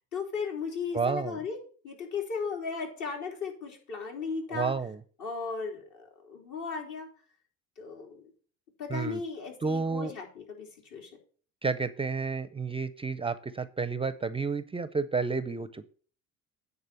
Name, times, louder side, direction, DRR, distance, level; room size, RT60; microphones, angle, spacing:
voice 1, 0.1-1.6 1.8-4.7 5.2-7.1 7.8-8.3 8.8-11.1, left 5 dB, 65° left, 0 dB, 3.4 m, -36 dB
voice 2, 0.9-1.4 4.5-5.0 8.9-9.2 9.6-10.1 11.6-15.9, right 4 dB, 15° right, 13 dB, 0.4 m, -31 dB
9.4 x 4.0 x 7.0 m, 0.43 s
supercardioid pair, 95°, 32 cm